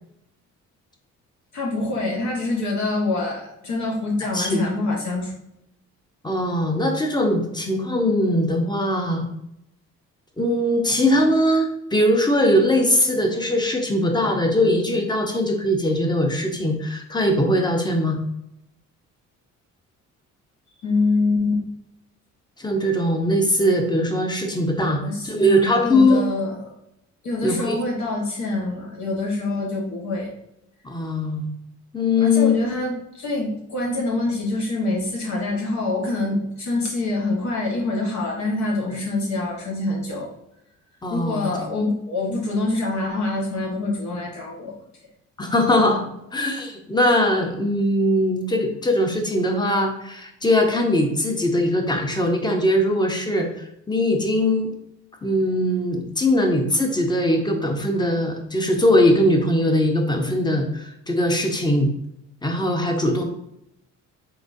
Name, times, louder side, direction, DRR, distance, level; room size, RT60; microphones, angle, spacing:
voice 1, 1.5-5.3 20.8-21.6 25.0-26.7 27.2-30.3 32.2-40.3 41.1-44.7 45.4-45.5, left 2 dB, 65° left, -2 dB, 1.2 m, -25 dB
voice 2, 4.3-4.7 6.2-9.3 10.4-18.2 22.6-26.3 27.4-27.8 30.8-31.5 31.9-32.5 41.0-41.5 45.4-46.0 46.3-54.7 55.2-61.9 62.4-63.2, left 1 dB, 15° left, 3 dB, 0.8 m, -21 dB
3.9 x 3.7 x 2.6 m, 0.80 s
cardioid pair, 90°, 30 cm